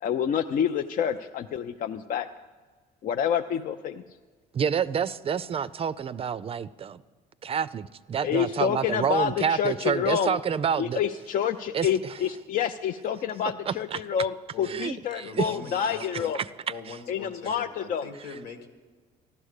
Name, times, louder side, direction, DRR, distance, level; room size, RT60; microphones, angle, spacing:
voice 1, 0.0-2.3 3.0-4.0 8.2-10.4 10.8-16.4 17.1-18.1, left 8 dB, 55° left, 8 dB, 0.5 m, -28 dB
voice 2, 4.5-7.0 7.4-11.0 11.7-11.9 13.7-14.0 14.7-15.5 16.3-16.5 16.9-17.0, right 7 dB, 35° right, 15 dB, 0.4 m, -28 dB
voice 3, 15.2-16.3 16.7-18.7, left 4 dB, 85° left, 6 dB, 1.9 m, -42 dB
14.0 x 12.0 x 6.5 m, 1.4 s
cardioid pair, 110°, 17 cm